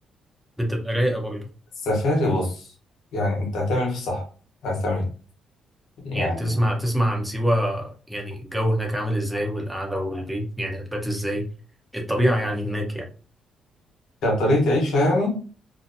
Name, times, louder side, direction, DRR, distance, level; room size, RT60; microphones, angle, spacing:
voice 1, 0.6-1.5 6.1-11.5 11.9-13.1, equal, 5° right, 0 dB, 0.8 m, -25 dB
voice 2, 1.8-2.7 3.1-4.2 4.6-5.1 6.0-6.6 14.2-15.4, left 1 dB, 75° left, 0 dB, 1.0 m, -23 dB
2.7 x 2.1 x 2.5 m, 0.39 s
cardioid pair, 90°, 0 cm